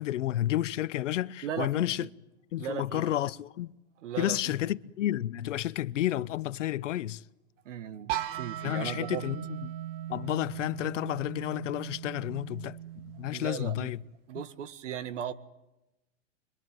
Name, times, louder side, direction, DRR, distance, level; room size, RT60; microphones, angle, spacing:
voice 1, 0.0-2.1 2.5-3.7 4.2-7.2 8.6-9.4 10.1-12.8 13.2-14.0, left 13 dB, 75° left, 1.0 m, -31 dB
voice 2, 1.4-2.1 2.6-3.2 4.0-4.6 7.7-9.3 13.3-13.9 14.3-15.3, right 8 dB, 75° right, 1.9 m, -37 dB
sound 1, 8.1-13.9, right 12 dB, 50° right, 2.0 m, -39 dB
26.0 x 23.5 x 9.3 m
hypercardioid pair, 130°, 37 cm